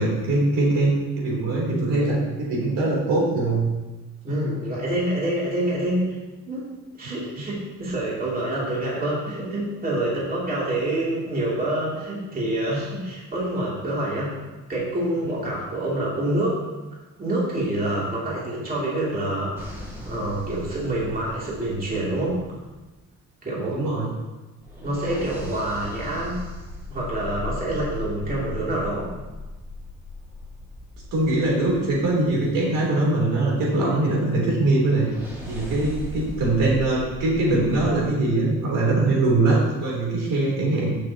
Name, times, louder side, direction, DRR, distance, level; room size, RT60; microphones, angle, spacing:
voice 1, 0.0-3.6 23.7-24.1 31.1-35.1 35.4-40.9, right 2 dB, 80° right, -4 dB, 3.5 m, -22 dB
voice 2, 4.2-6.2 6.5-6.7 7.0-14.4 14.7-16.6 17.2-22.4 23.4-23.9 24.8-26.4 26.9-29.1, right 1 dB, 25° right, -6 dB, 2.9 m, -27 dB
sound 1, 19.5-23.1 24.6-32.6 34.9-38.1, left 2 dB, 5° right, 2.2 m, -38 dB
16.0 x 6.6 x 3.0 m, 1.2 s
cardioid pair, 140°, 32 cm